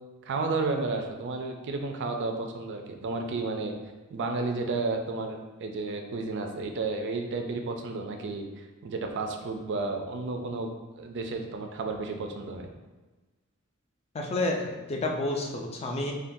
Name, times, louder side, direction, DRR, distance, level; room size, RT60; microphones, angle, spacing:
voice 1, 0.2-3.7 4.1-8.5 8.8-10.7 11.0-12.7, right 3 dB, 55° right, 4 dB, 0.4 m, -32 dB
voice 2, 14.1-16.1, left 2 dB, 30° left, 1 dB, 0.4 m, -30 dB
3.5 x 2.2 x 2.6 m, 1.2 s
head